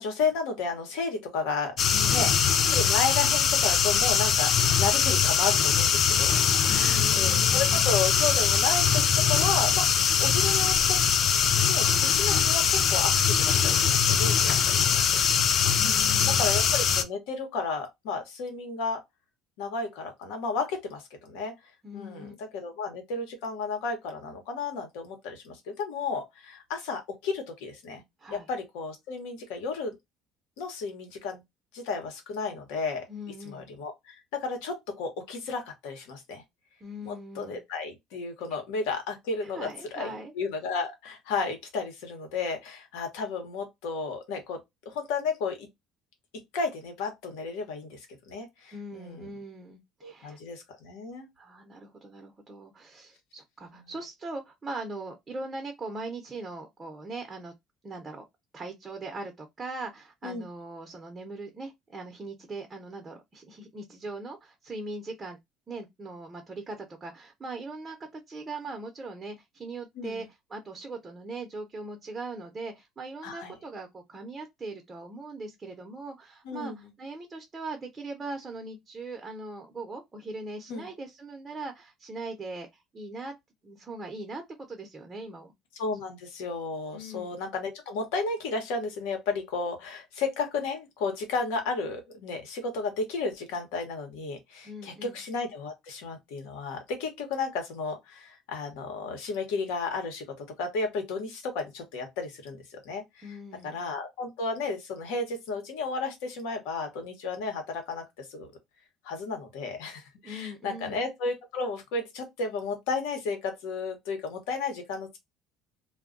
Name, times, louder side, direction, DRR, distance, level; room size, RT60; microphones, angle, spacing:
voice 1, 0.0-1.7 2.1-2.3 2.7-11.0 11.6-15.2 15.8-19.0 19.6-21.5 21.9-28.0 28.3-30.0 30.6-31.4 31.7-33.0 33.4-36.4 37.0-45.7 46.5-48.0 48.3-49.3 50.0-51.3 53.7-53.8 60.2-60.4 70.0-70.2 73.2-73.5 76.4-76.9 80.7-80.9 85.8-103.3 103.6-108.5 109.0-115.2, left 4 dB, 85° left, 1.0 m, -33 dB
sound 1, 1.8-17.0, left 7 dB, 50° left, 0.4 m, -22 dB
voice 2, 1.9-2.4 6.7-7.9 15.7-16.6 21.8-22.3 28.2-28.5 33.1-33.7 36.8-37.6 39.4-40.3 48.7-50.4 51.4-57.5 57.8-58.2 58.5-65.4 65.7-83.3 83.6-85.5 86.9-87.3 94.6-95.2 103.2-103.8 110.2-111.0, right 2 dB, 25° right, 0.7 m, -40 dB
2.2 x 2.2 x 3.7 m
supercardioid pair, 100°, 0 cm